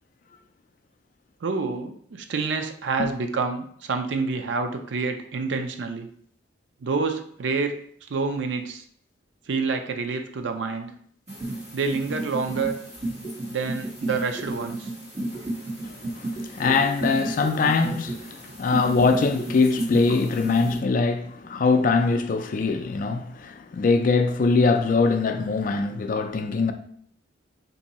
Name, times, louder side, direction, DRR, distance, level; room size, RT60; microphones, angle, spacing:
voice 1, 1.4-6.1 6.8-7.7 8.1-8.8 9.5-10.9 11.7-12.7 13.5-14.9, right 4 dB, 70° right, 0.4 m, -28 dB
sound 1, 11.3-20.8, right 2 dB, 35° right, 1.4 m, -33 dB
voice 2, 15.8-26.7, left 4 dB, 45° left, 0.3 m, -22 dB
2.7 x 2.6 x 4.1 m
head